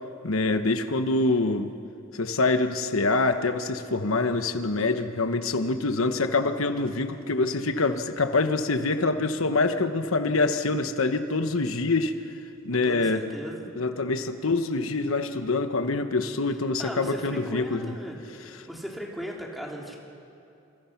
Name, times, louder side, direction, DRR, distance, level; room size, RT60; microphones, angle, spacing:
voice 1, 0.2-1.7 2.1-12.1 12.6-13.2 13.8-17.9, left 3 dB, 85° left, 8 dB, 1.2 m, -25 dB
voice 2, 12.7-13.6 16.8-18.2 18.7-20.0, equal, ahead, -2 dB, 3.7 m, -37 dB
29.0 x 28.0 x 6.0 m, 2.6 s
head